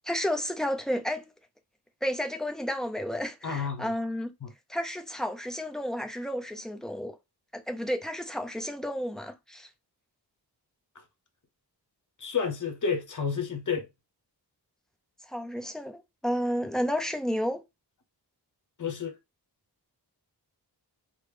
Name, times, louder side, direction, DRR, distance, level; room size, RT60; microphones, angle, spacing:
voice 1, 0.0-1.3 2.0-4.3 4.7-7.2 7.5-9.7 15.3-17.6, equal, ahead, 0.4 m, -31 dB
voice 2, 3.4-3.9 4.4-4.5 12.2-13.9 18.8-19.1, left 6 dB, 50° left, 0.9 m, -30 dB
3.5 x 2.1 x 3.1 m
wide cardioid pair, 135°, 40 cm